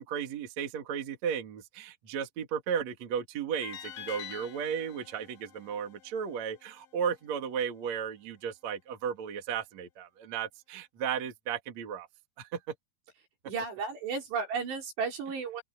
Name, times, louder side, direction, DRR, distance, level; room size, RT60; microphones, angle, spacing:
voice 1, 0.0-12.1 12.4-12.6, right 7 dB, 45° right, 3.0 m, -34 dB
sound 1, 3.6-6.8, left 10 dB, 85° left, 4.3 m, -46 dB
voice 2, 13.5-15.6, right 5 dB, 75° right, 6.5 m, -33 dB
open air
omnidirectional pair, 4.9 m